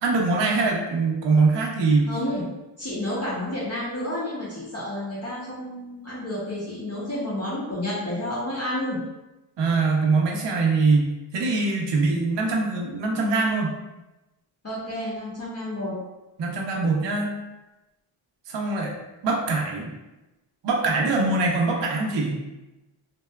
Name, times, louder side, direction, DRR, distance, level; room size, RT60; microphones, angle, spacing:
voice 1, 0.0-2.0 9.6-11.1 11.3-13.8 16.4-17.3 18.5-18.9 19.2-19.9 20.6-22.4, right 3 dB, 60° right, -1 dB, 0.6 m, -23 dB
voice 2, 2.1-2.4 2.8-9.0 14.6-16.0, left 1 dB, 30° left, -8 dB, 0.6 m, -30 dB
2.7 x 2.2 x 2.2 m, 1.0 s
wide cardioid pair, 115°, 50 cm